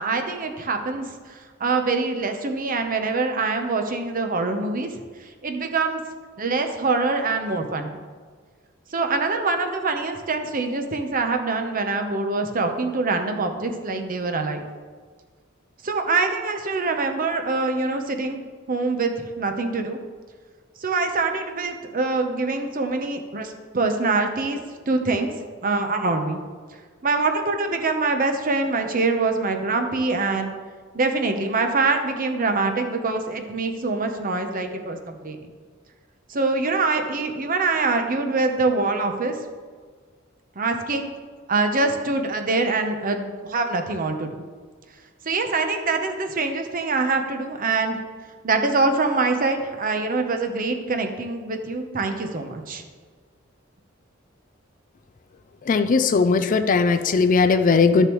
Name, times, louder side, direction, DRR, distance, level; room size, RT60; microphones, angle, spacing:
voice 1, 0.0-4.9 5.2-6.0 6.4-8.0 8.9-14.6 15.8-20.0 20.8-24.6 24.9-25.3 25.6-26.4 27.0-30.5 30.9-35.4 36.3-39.4 40.6-41.1 41.5-44.4 45.2-48.0 48.4-52.8, right 3 dB, 45° right, 6 dB, 0.8 m, -24 dB
voice 2, 55.7-58.1, left 4 dB, 40° left, 9 dB, 0.4 m, -18 dB
12.0 x 6.6 x 3.1 m, 1.5 s
head